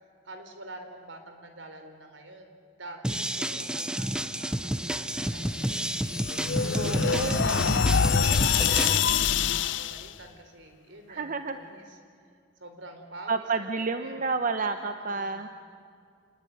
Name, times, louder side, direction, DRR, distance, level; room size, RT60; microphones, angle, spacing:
voice 1, 0.2-2.5 2.8-5.8 6.6-7.1 7.7-12.0 12.6-14.3 14.9-15.4, right 2 dB, 75° right, 6 dB, 4.0 m, -47 dB
sound 1, 3.0-9.0, right 1 dB, 5° right, 0.7 m, -30 dB
sound 2, 5.6-10.1, left 6 dB, 75° left, 0.7 m, -25 dB
voice 2, 6.7-7.7 11.1-11.6 13.3-15.5, right 4 dB, 45° right, 8 dB, 0.9 m, -30 dB
28.5 x 20.5 x 9.2 m, 2.3 s
head